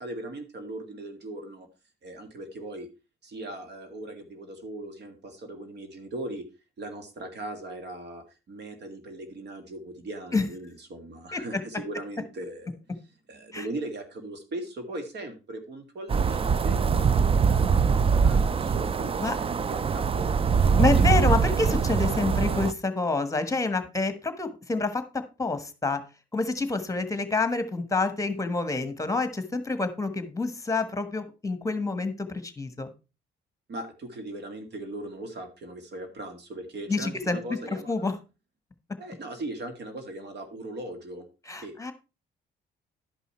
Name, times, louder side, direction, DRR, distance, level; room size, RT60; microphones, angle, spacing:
voice 1, 0.0-1.7 2.0-2.9 3.2-6.4 6.8-12.7 13.3-20.4 33.7-38.1 39.0-41.2 41.6-41.7, right 1 dB, 60° right, 6 dB, 2.1 m, -39 dB
sound 1, 16.1-22.7, right 6 dB, 30° right, 0.4 m, -23 dB
voice 2, 20.8-26.0 26.3-32.9 36.9-37.4 37.9-38.1 41.5-41.9, left 3 dB, 15° left, 10 dB, 1.4 m, -28 dB
11.5 x 5.5 x 4.3 m, 0.31 s
cardioid pair, 90°, 20 cm